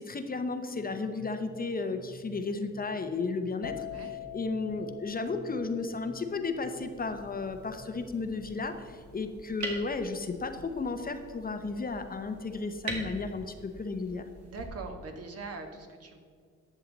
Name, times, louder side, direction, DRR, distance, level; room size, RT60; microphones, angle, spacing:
voice 1, 0.0-3.9 4.3-14.3, left 3 dB, 30° left, 7 dB, 0.8 m, -34 dB
sound 1, 0.7-8.9, right 2 dB, 25° right, 2.7 m, -53 dB
sound 2, 3.6-11.2 11.5-12.0, left 12 dB, 65° left, 0.6 m, -45 dB
sound 3, 6.6-14.7, right 3 dB, 75° right, 2.2 m, -44 dB
voice 2, 14.4-16.2, right 3 dB, 50° right, 4 dB, 1.4 m, -42 dB
11.0 x 7.4 x 4.0 m, 2.1 s
cardioid pair, 90°, 30 cm